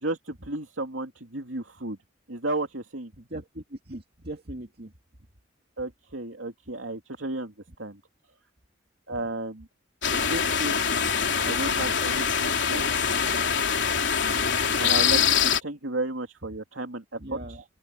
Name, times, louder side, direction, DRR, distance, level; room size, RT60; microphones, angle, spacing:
voice 1, 0.0-2.0 2.3-3.1 5.8-7.5 7.8-8.0 9.1-9.7 10.1-10.8 11.4-12.9 14.8-17.6, right 2 dB, 85° right, 2.8 m, -33 dB
voice 2, 3.2-4.9 9.1-9.2 10.2-10.3 17.2-17.6, right 1 dB, 50° right, 2.4 m, -39 dB
sound 1, 10.0-15.6, left 7 dB, 65° left, 3.6 m, -24 dB
open air
head